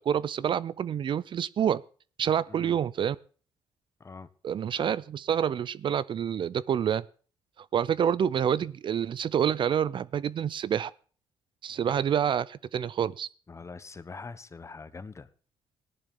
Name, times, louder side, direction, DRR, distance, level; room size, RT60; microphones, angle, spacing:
voice 1, 0.0-1.8 2.2-3.2 4.4-7.0 7.7-10.9 11.6-13.3, right 8 dB, 50° right, 0.5 m, -27 dB
voice 2, 2.5-2.8 4.0-4.3 13.5-15.3, left 4 dB, 30° left, 1.0 m, -43 dB
16.5 x 11.0 x 3.7 m
cardioid pair, 80°, 10 cm